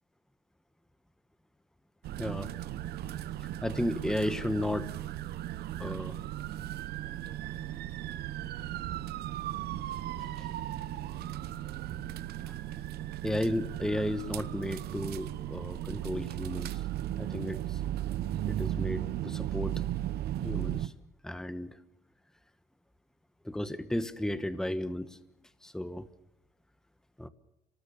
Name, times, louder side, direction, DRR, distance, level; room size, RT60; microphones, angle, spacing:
sound 1, 2.0-20.9, right 12 dB, 70° right, 1.1 m, -36 dB
voice 1, 2.2-2.5 3.6-4.9 5.8-6.2 9.8-10.5 11.1-11.5 12.4-12.6 13.2-16.9 17.2-17.8 18.4-19.8 20.4-20.9 21.2-21.8 23.4-25.2 25.6-26.1 27.2-27.3, left 1 dB, 5° left, 13 dB, 1.2 m, -34 dB
26.0 x 19.0 x 6.9 m, 0.84 s
cardioid pair, 110°, 17 cm